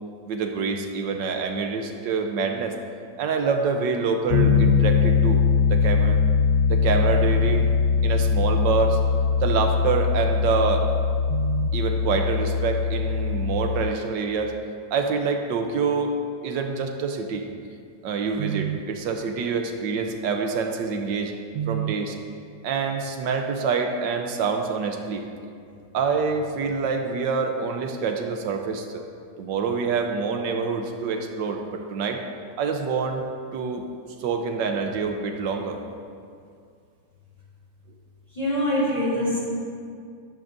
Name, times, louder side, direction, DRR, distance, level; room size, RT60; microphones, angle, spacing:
voice 1, 0.3-2.7 3.2-6.2 6.7-7.7 8.0-9.0 9.4-10.9 11.3-14.5 14.9-16.2 16.4-17.5 18.0-22.1 22.6-25.3 25.9-29.0 29.4-32.2 32.6-33.3 33.5-33.8 34.2-35.8, right 5 dB, 80° right, 4 dB, 1.4 m, -26 dB
Piano, 4.3-13.9, left 6 dB, 75° left, 0.8 m, -21 dB
voice 2, 38.3-39.4, left 1 dB, 20° left, -7 dB, 3.2 m, -24 dB
13.0 x 12.0 x 2.6 m, 2.3 s
omnidirectional pair, 2.0 m